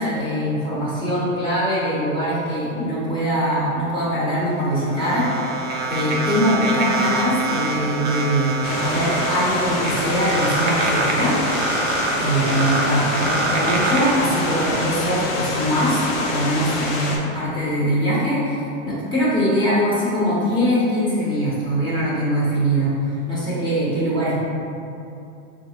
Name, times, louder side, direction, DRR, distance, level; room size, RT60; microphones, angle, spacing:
voice 1, 0.0-5.4 5.9-11.4 12.1-22.9 23.3-24.4, equal, 10° left, -10 dB, 1.2 m, -22 dB
sound 1, 4.4-14.8, right 3 dB, 25° right, 0.4 m, -25 dB
sound 2, 8.6-17.2, left 2 dB, 80° left, 0.7 m, -26 dB
3.8 x 2.4 x 2.9 m, 2.6 s
hypercardioid pair, 115°, 39 cm